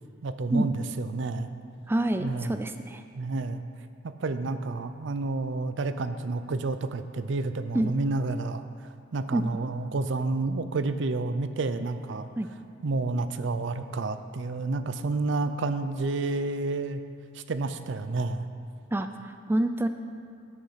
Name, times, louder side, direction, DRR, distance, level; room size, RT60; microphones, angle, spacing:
voice 1, 0.2-1.5 2.2-2.5 3.2-3.6 4.0-8.6 9.1-12.3 12.8-17.0 17.3-18.5, right 3 dB, 70° right, 10 dB, 0.5 m, -30 dB
voice 2, 1.9-3.0 7.7-7.9 9.3-9.5 12.4-12.5 18.9-19.9, right 1 dB, 10° right, 7 dB, 0.3 m, -27 dB
9.0 x 8.4 x 5.7 m, 2.5 s
head